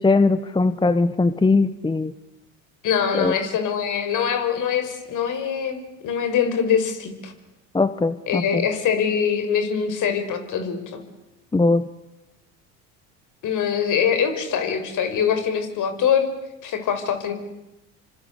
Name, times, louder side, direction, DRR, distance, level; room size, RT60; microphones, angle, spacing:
voice 1, 0.0-2.1 3.1-3.3 7.7-8.6 11.5-11.9, left 3 dB, 10° left, 14 dB, 1.1 m, -20 dB
voice 2, 2.8-7.3 8.3-11.0 13.4-16.3 16.6-17.3, left 7 dB, 55° left, 8 dB, 5.9 m, -23 dB
28.0 x 25.5 x 8.3 m, 0.95 s
supercardioid pair, 85°, 38 cm